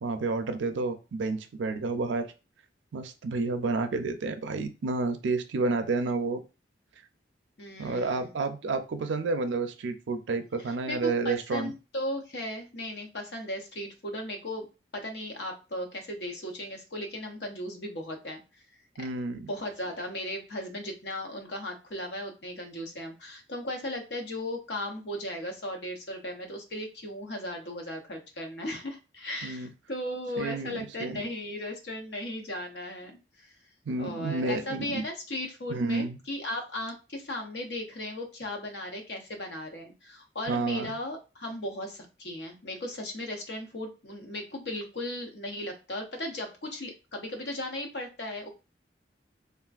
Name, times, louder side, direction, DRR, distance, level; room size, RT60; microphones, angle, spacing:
voice 1, 0.0-2.3 2.9-6.4 7.8-11.7 19.0-19.5 29.4-29.7 30.4-31.2 33.9-35.1 35.7-36.2 40.5-40.9, right 3 dB, 90° right, 8 dB, 0.5 m, -30 dB
voice 2, 7.6-8.3 10.6-14.7 14.9-18.6 19.0-19.1 19.5-33.5 34.0-48.5, left 1 dB, 70° left, 3 dB, 0.8 m, -36 dB
3.4 x 2.5 x 2.4 m, 0.30 s
head